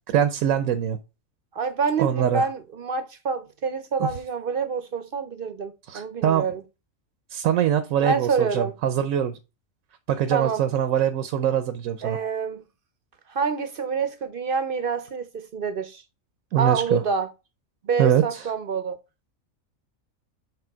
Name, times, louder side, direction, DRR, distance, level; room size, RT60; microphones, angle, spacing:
voice 1, 0.1-1.0 2.0-2.5 4.0-4.1 5.9-6.4 7.3-9.4 10.1-12.2 16.5-17.0 18.0-18.5, right 9 dB, 80° right, 1.1 m, -23 dB
voice 2, 1.5-6.6 8.0-8.7 10.3-10.6 12.0-12.6 13.3-16.0 16.6-17.3 17.8-19.0, right 5 dB, 55° right, 0.7 m, -27 dB
6.9 x 3.3 x 4.5 m
omnidirectional pair, 1.4 m